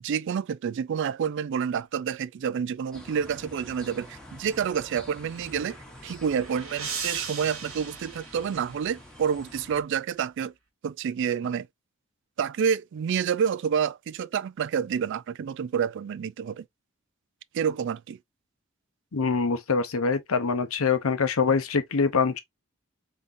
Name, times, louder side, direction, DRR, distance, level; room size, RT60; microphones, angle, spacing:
voice 1, 0.0-5.8 6.0-10.5 10.8-11.7 12.4-16.6 17.5-18.2, right 7 dB, 60° right, 0.3 m, -28 dB
sound 1, 2.9-9.8, left 1 dB, 5° left, 1.0 m, -47 dB
sound 2, 5.8-9.1, right 6 dB, 80° right, 1.7 m, -38 dB
voice 2, 19.1-22.4, left 5 dB, 80° left, 0.7 m, -24 dB
3.8 x 3.6 x 2.6 m
head